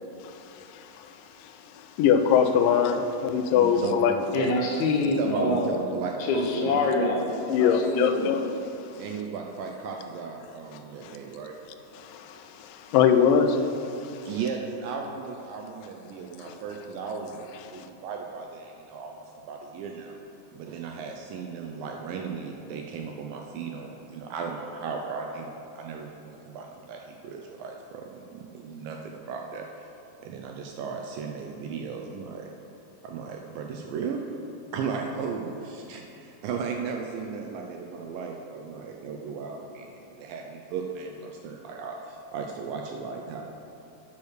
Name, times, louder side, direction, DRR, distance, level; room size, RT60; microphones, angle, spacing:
voice 1, 0.5-1.2 1.4-1.5 2.0-4.2 7.5-8.4 11.0-11.1 12.0-14.3 16.4-16.5 17.7-17.8, left 7 dB, 90° left, 7 dB, 1.9 m, -23 dB
voice 2, 3.5-4.5 5.2-6.9 9.0-11.5 14.3-20.2 20.5-29.7 30.2-32.5 33.0-34.2 34.7-43.5, right 5 dB, 80° right, 2 dB, 2.1 m, -36 dB
voice 3, 4.3-5.7 6.2-7.3 7.6-8.3, left 2 dB, 75° left, -2 dB, 1.8 m, -25 dB
8.5 x 6.2 x 6.4 m, 2.7 s
omnidirectional pair, 4.5 m